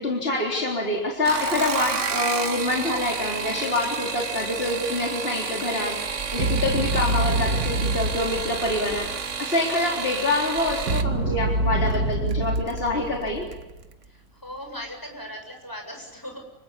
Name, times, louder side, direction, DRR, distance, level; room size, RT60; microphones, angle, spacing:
voice 1, 0.0-13.5, left 2 dB, 40° left, -1 dB, 4.1 m, -26 dB
sound 1, 1.1-11.1 12.3-12.8 13.2-13.6 13.9-14.0, right 6 dB, 55° right, 1.6 m, -31 dB
sound 2, 6.1-9.3 10.6-13.9, right 2 dB, 85° right, 2.7 m, -26 dB
voice 2, 14.1-16.4, equal, 15° left, 3 dB, 7.7 m, -38 dB
28.5 x 25.0 x 7.2 m, 1.0 s
omnidirectional pair, 1.6 m